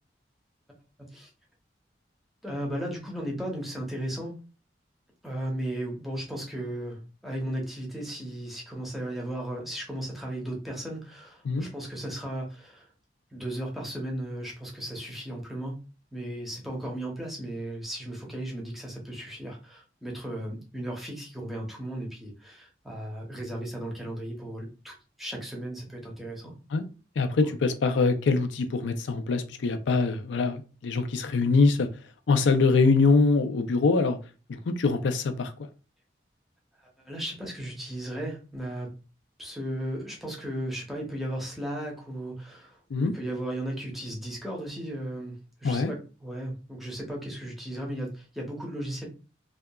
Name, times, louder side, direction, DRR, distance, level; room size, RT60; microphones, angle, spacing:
voice 1, 2.4-4.4 5.2-12.9 13.3-15.7 16.1-26.5 27.4-27.5 37.0-38.9 39.4-42.8 43.0-49.1, right 1 dB, ahead, 0.7 m, -35 dB
voice 2, 27.2-31.9 32.3-34.2 34.5-35.5 42.9-43.1 45.6-45.9, left 4 dB, 85° left, 0.4 m, -23 dB
2.7 x 2.3 x 2.2 m
head